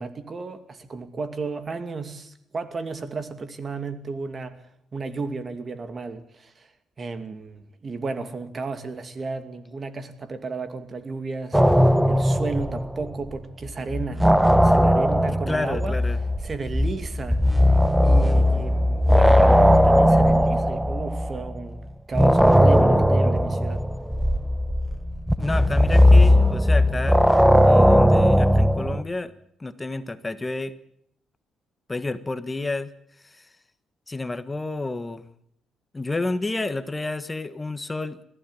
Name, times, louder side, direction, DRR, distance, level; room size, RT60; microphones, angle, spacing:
voice 1, 0.0-4.6 4.9-6.7 7.0-11.8 12.1-16.0 16.4-17.4 18.0-23.8, right 4 dB, 40° right, 2.5 m, -33 dB
sound 1, 11.5-13.4 13.7-21.6 22.1-29.0, equal, 5° right, 1.1 m, -18 dB
voice 2, 15.3-16.2 25.4-27.3 27.6-29.3 29.6-30.7 31.9-32.9 33.2-33.5 34.1-35.2 35.9-38.2, left 2 dB, 20° left, 1.4 m, -30 dB
21.0 x 15.0 x 9.1 m
cardioid pair, 90°, 0 cm